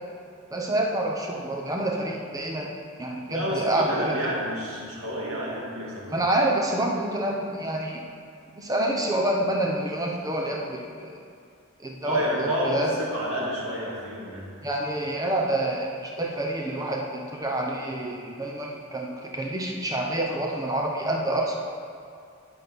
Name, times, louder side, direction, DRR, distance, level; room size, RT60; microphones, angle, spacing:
voice 1, 0.5-2.7 3.0-4.3 6.1-8.0 8.6-11.2 11.8-13.0 14.6-21.6, right 1 dB, 15° right, 0 dB, 0.9 m, -27 dB
voice 2, 3.3-6.1 12.0-14.5, equal, 80° right, -5 dB, 2.4 m, -29 dB
10.0 x 6.1 x 5.4 m, 2.4 s
head